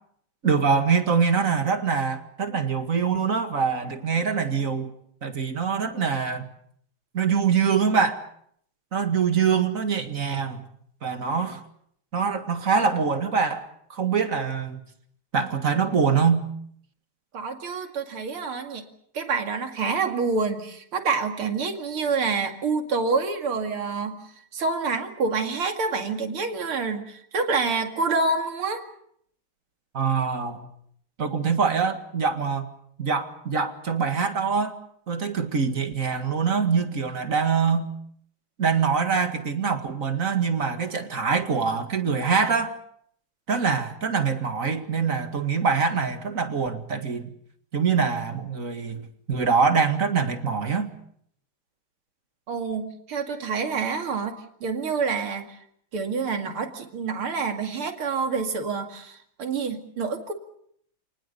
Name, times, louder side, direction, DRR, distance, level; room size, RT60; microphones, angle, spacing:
voice 1, 0.4-4.9 5.2-6.5 7.1-8.2 8.9-10.7 11.0-11.6 12.1-14.8 15.3-16.5 29.9-30.7 31.2-32.7 33.0-34.8 35.1-37.9 38.6-42.8 43.5-47.3 47.7-50.9, right 5 dB, 40° right, 7 dB, 2.2 m, -24 dB
voice 2, 17.3-18.8 19.1-24.2 24.5-28.9 52.5-55.6 55.9-60.3, right 4 dB, 85° right, 6 dB, 3.2 m, -27 dB
28.5 x 19.5 x 6.9 m, 0.67 s
omnidirectional pair, 2.3 m